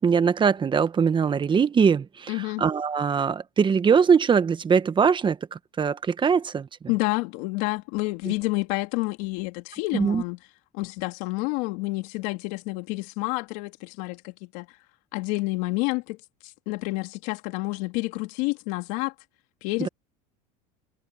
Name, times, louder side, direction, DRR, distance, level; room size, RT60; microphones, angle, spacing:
voice 1, 0.0-6.7 9.9-10.2 19.8-19.9, right 6 dB, 25° right, 1.3 m, -22 dB
voice 2, 2.3-2.6 6.9-10.4 10.7-14.7 15.1-16.2 16.4-19.1 19.6-19.9, left 24 dB, 75° left, 2.6 m, -29 dB
supercardioid pair, 105°, 19 cm